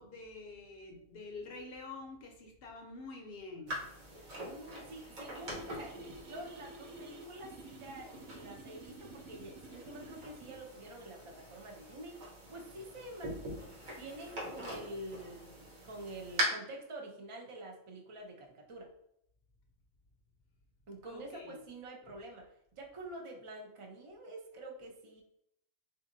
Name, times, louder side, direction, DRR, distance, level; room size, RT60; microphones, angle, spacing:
voice 1, 0.0-3.9 21.0-21.6 22.0-22.2, left 3 dB, 60° left, 2 dB, 0.7 m, -47 dB
sound 1, 3.7-16.4, right 1 dB, 90° right, 1.5 m, -44 dB
voice 2, 4.2-13.4 14.0-18.9 20.9-25.2, right 1 dB, 55° right, 1 dB, 0.3 m, -48 dB
sound 2, 5.4-10.6, right 1 dB, 70° right, 0.9 m, -51 dB
4.0 x 2.6 x 2.5 m, 0.76 s
omnidirectional pair, 1.4 m